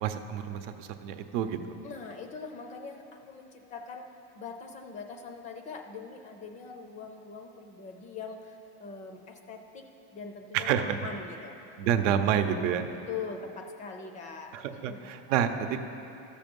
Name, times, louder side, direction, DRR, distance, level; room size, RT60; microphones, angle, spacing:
voice 1, 0.0-1.6 10.5-11.0 11.8-12.9 14.5-15.8, right 9 dB, 90° right, 8 dB, 0.8 m, -28 dB
voice 2, 1.8-4.1 4.4-9.8 10.1-11.6 13.1-15.1, left 5 dB, 20° left, 5 dB, 0.4 m, -42 dB
13.5 x 7.0 x 5.3 m, 2.9 s
cardioid pair, 165°, 36 cm